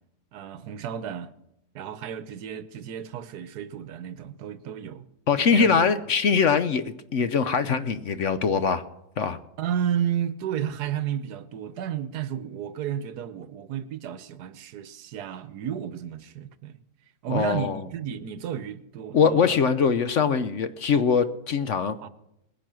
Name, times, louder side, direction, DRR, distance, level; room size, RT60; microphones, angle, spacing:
voice 1, 0.3-1.3 1.7-5.1 5.5-5.9 9.6-16.8 17.2-19.5 22.0-22.1, right 9 dB, 75° right, 1.3 m, -32 dB
voice 2, 5.3-8.8 9.2-9.4 17.3-17.8 19.1-22.0, left 6 dB, 60° left, 0.9 m, -22 dB
20.5 x 10.0 x 6.2 m
omnidirectional pair, 1.7 m